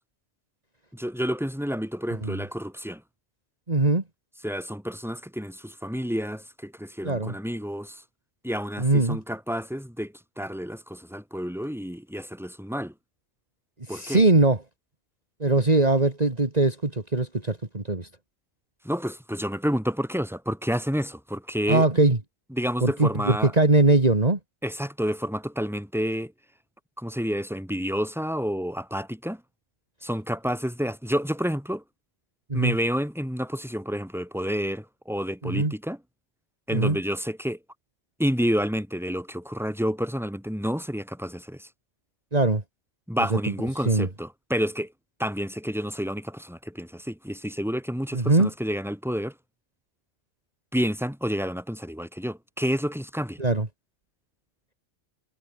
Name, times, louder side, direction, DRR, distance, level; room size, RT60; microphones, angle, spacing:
voice 1, 0.9-3.0 4.4-8.0 8.4-12.9 13.9-14.2 18.8-21.8 22.5-23.5 24.6-26.3 27.0-29.4 30.0-31.8 32.5-36.0 36.7-37.6 38.2-41.7 43.1-44.9 45.2-49.3 50.7-53.4, equal, ahead, 6.5 m, -29 dB
voice 2, 3.7-4.0 7.0-7.3 8.8-9.2 13.9-14.6 15.4-18.1 21.7-22.2 22.8-24.4 32.5-32.7 35.4-35.7 36.7-37.0 42.3-42.6 43.3-43.4 43.8-44.1 48.1-48.5 53.4-53.7, right 2 dB, 35° right, 2.6 m, -21 dB
omnidirectional pair, 1.2 m